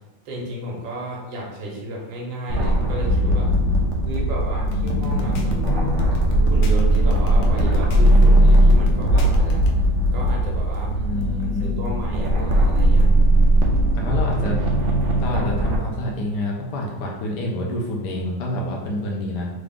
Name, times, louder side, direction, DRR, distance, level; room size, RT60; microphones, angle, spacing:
voice 1, 0.2-3.5 4.1-5.7 6.5-9.6 10.1-10.9 11.4-13.1, right 1 dB, 85° right, -2 dB, 1.6 m, -33 dB
sound 1, 2.5-15.8, right 1 dB, 65° right, 0.7 m, -18 dB
sound 2, 4.7-9.8, right 2 dB, 85° left, 1.3 m, -27 dB
voice 2, 10.9-11.9 13.9-14.6 15.2-19.5, left 1 dB, 70° left, -1 dB, 1.2 m, -28 dB
3.9 x 2.5 x 3.4 m, 1.1 s
omnidirectional pair, 2.0 m